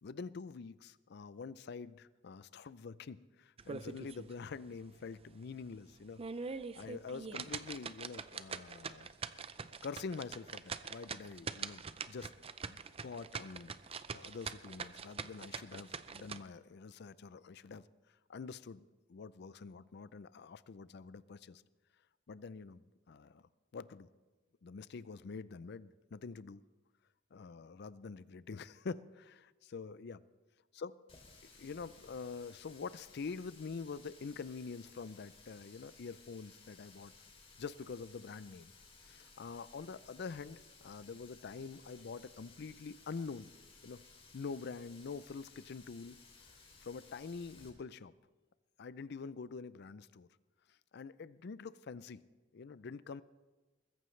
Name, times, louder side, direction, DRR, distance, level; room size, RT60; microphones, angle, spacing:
voice 1, 0.0-6.2 6.7-9.1 9.8-12.3 12.7-13.7 14.1-17.9 18.3-21.6 22.3-24.1 24.6-26.6 27.3-30.2 30.8-30.9 31.5-37.1 37.6-38.7 39.0-43.5 43.8-44.0 44.3-46.2 46.8-48.1 48.8-50.3 50.9-52.2 52.5-53.2, left 5 dB, 60° left, 17 dB, 0.5 m, -46 dB
sound 1, 3.6-4.3 4.7-4.8 5.3-5.4 6.0-16.4, right 5 dB, 30° right, 0.5 m, -43 dB
Water tap faucet, 31.1-47.7, left 4 dB, 30° left, 2.5 m, -60 dB
21.5 x 14.5 x 3.2 m, 1.2 s
head